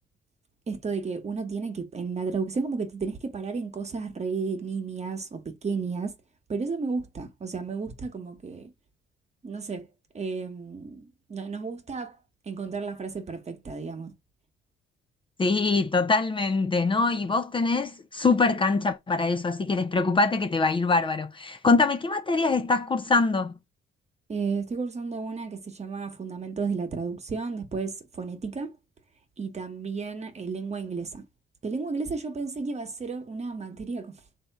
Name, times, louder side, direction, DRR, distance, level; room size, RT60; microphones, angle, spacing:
voice 1, 0.7-6.2 6.5-8.7 9.4-9.9 10.1-14.1 24.3-28.8 29.4-31.2 31.6-34.2, right 4 dB, 35° right, 1.1 m, -33 dB
voice 2, 15.4-23.5, left 3 dB, 25° left, 0.5 m, -24 dB
3.5 x 2.8 x 4.6 m
cardioid pair, 90°, 20 cm